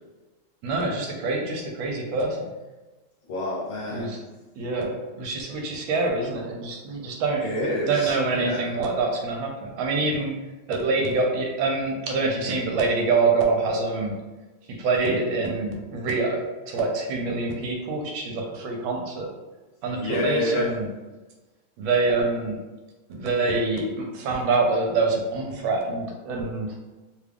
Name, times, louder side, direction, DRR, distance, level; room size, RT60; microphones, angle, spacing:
voice 1, 0.6-2.5 3.9-4.2 4.6-7.5 7.9-10.3 10.7-14.1 14.7-19.3 19.8-20.9 21.8-22.6 23.1-26.7, right 3 dB, 80° right, 1 dB, 1.4 m, -25 dB
voice 2, 3.3-4.2 7.4-8.7 20.0-20.7, left 1 dB, 70° left, -3 dB, 1.5 m, -28 dB
3.6 x 2.3 x 3.3 m, 1.2 s
omnidirectional pair, 2.3 m